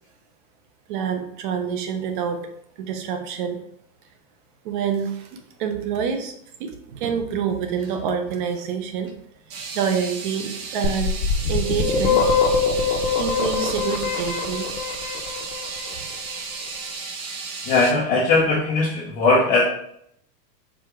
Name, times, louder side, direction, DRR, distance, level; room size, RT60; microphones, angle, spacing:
voice 1, 0.9-2.5 2.8-3.6 4.6-5.3 5.6-6.3 6.6-9.1 9.7-11.2 11.5-12.2 13.2-14.7, right 7 dB, 35° right, 6 dB, 0.5 m, -27 dB
sound 1, 6.9-7.2 7.8-8.0 9.1-9.2 9.5-17.9, right 4 dB, 55° right, 1.0 m, -34 dB
sound 2, 10.8-15.7, left 5 dB, 60° left, 0.9 m, -22 dB
voice 2, 17.7-19.6, left 3 dB, 20° left, -5 dB, 0.4 m, -19 dB
4.8 x 2.4 x 4.5 m, 0.70 s
supercardioid pair, 145°, 48 cm